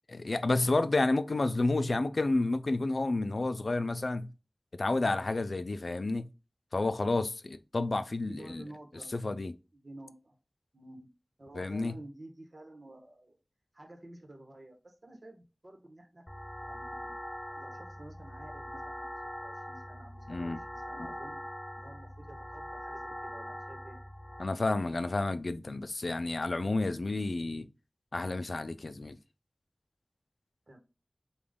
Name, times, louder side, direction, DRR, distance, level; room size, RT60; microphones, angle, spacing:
voice 1, 0.1-4.3 4.7-6.3 6.7-8.6 9.1-9.5 11.5-12.0 20.3-20.6 24.4-27.7 28.1-29.2, left 2 dB, 90° left, 0.3 m, -30 dB
voice 2, 1.7-2.1 8.2-9.1 9.7-10.4 10.7-11.1 11.4-13.4 13.7-16.2 16.6-17.2 17.5-24.0 30.7-30.8, right 1 dB, 60° right, 1.0 m, -51 dB
sound 1, 16.3-24.4, equal, 10° left, 0.3 m, -42 dB
5.0 x 2.3 x 3.6 m
wide cardioid pair, 55°, 0 cm